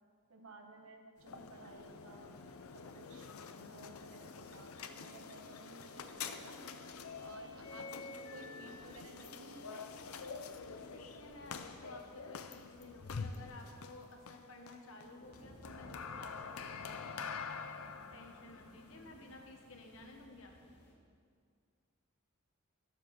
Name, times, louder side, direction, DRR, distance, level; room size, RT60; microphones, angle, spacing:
voice 1, 0.3-2.3 2.7-3.3 3.6-6.6 7.2-9.9, right 2 dB, 75° right, 4 dB, 1.2 m, -55 dB
sound 1, 1.2-20.3, left 5 dB, 85° left, 0.6 m, -47 dB
sound 2, 1.7-20.9, equal, 55° left, 1.9 m, -63 dB
voice 2, 10.9-17.1 18.1-20.5, left 2 dB, 70° left, 2 dB, 1.4 m, -54 dB
12.0 x 7.5 x 5.9 m, 2.2 s
head